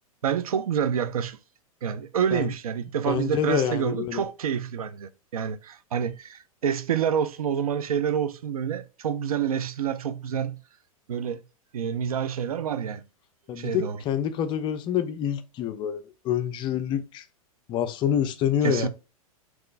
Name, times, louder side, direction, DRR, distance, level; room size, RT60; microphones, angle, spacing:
voice 1, 0.2-1.4 1.8-10.6 11.1-11.4 11.7-13.0 13.6-14.0 18.6-18.9, right 8 dB, 75° right, 0.4 m, -28 dB
voice 2, 3.0-4.2 13.5-17.2 17.7-18.9, left 9 dB, 25° left, 0.4 m, -27 dB
3.7 x 3.0 x 2.4 m
figure-of-eight pair, 100°, 19 cm